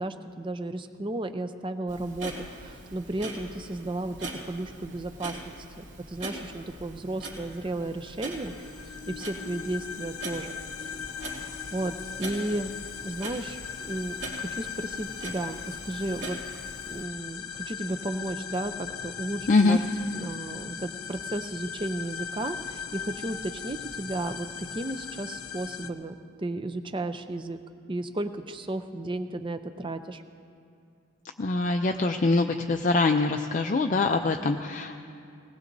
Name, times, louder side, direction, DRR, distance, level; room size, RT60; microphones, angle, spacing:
voice 1, 0.0-10.5 10.8-12.7 13.0-13.6 13.8-16.4 16.8-27.6 27.9-30.2, right 2 dB, 20° right, 9 dB, 0.5 m, -34 dB
Clock, 1.9-17.0, right 2 dB, 50° right, 2.8 m, -42 dB
sound 1, 7.8-25.9, left 8 dB, 75° left, 0.8 m, -39 dB
voice 2, 19.5-19.8 31.4-35.0, left 3 dB, 35° left, 5 dB, 0.4 m, -24 dB
21.0 x 19.0 x 2.7 m, 2.4 s
head